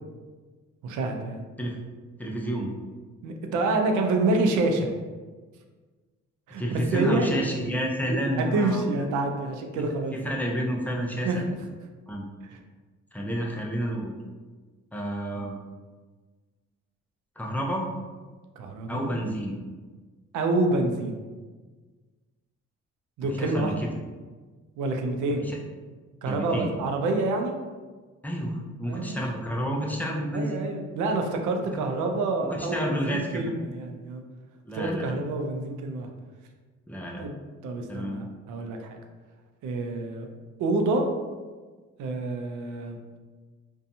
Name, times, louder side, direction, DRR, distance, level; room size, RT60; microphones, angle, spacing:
voice 1, 0.8-1.4 3.2-4.9 6.5-7.5 8.0-10.2 11.2-11.4 12.5-12.6 18.6-19.1 20.3-21.2 23.2-23.8 24.8-25.4 26.2-27.5 28.9-29.2 30.3-34.2 34.7-36.1 37.2-37.4 37.6-39.0 39.6-40.3 40.6-41.0 42.0-43.0, right 2 dB, 80° right, 3 dB, 0.5 m, -27 dB
voice 2, 2.2-2.7 6.6-9.0 9.7-11.6 12.1-12.2 13.1-14.2 14.9-15.6 17.4-17.8 18.9-19.6 23.3-23.9 25.4-25.6 26.3-26.7 28.2-30.6 32.5-33.5 34.6-35.1 36.9-37.2 37.9-38.2, equal, 5° left, -1 dB, 0.4 m, -30 dB
2.6 x 2.2 x 2.6 m, 1.4 s
cardioid pair, 90°, 30 cm